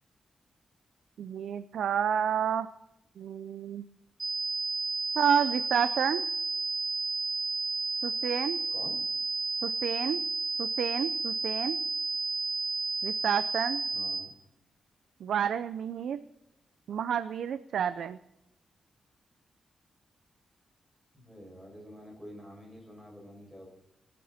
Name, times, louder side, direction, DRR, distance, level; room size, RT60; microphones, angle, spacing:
voice 1, 1.2-2.7 3.2-3.8 5.2-6.2 8.0-8.6 9.6-10.2 10.6-11.8 13.0-13.8 15.2-16.2 16.9-18.2, right 8 dB, 85° right, 12 dB, 0.6 m, -30 dB
sound 1, 4.2-14.2, right 3 dB, 30° right, 2.7 m, -32 dB
voice 2, 13.9-14.3 21.1-23.7, equal, 5° right, 0 dB, 6.8 m, -48 dB
28.5 x 10.5 x 4.3 m, 0.87 s
wide cardioid pair, 160°, 0 cm